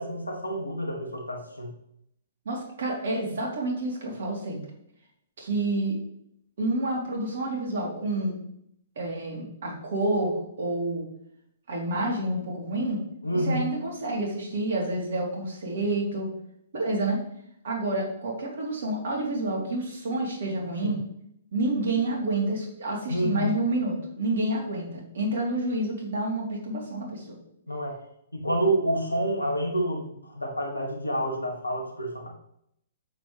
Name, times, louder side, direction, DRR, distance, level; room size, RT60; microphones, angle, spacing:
voice 1, 0.0-1.7 13.2-13.7 20.8-21.0 23.1-23.6 27.7-28.0 28.3-32.3, right 1 dB, 85° left, 2 dB, 2.1 m, -28 dB
voice 2, 2.4-4.6 5.4-6.0 6.6-8.3 8.9-11.0 11.7-13.0 13.3-16.3 16.7-17.2 17.6-21.0 21.5-27.4, right 2 dB, 60° right, -1 dB, 3.3 m, -29 dB
9.2 x 7.7 x 3.3 m, 0.73 s
figure-of-eight pair, 120°, 0 cm